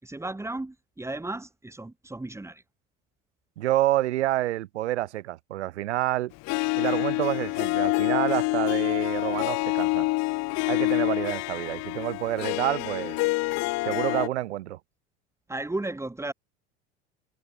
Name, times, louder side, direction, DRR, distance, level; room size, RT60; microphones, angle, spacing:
voice 1, 0.0-2.6 15.5-16.3, right 2 dB, 10° right, 3.7 m, -34 dB
voice 2, 3.6-6.3 6.7-10.1 10.7-13.2 13.8-14.8, right 15 dB, 70° right, 1.8 m, -28 dB
Harp, 6.4-14.3, left 23 dB, 50° left, 1.1 m, -27 dB
hypercardioid pair, 80°, 35 cm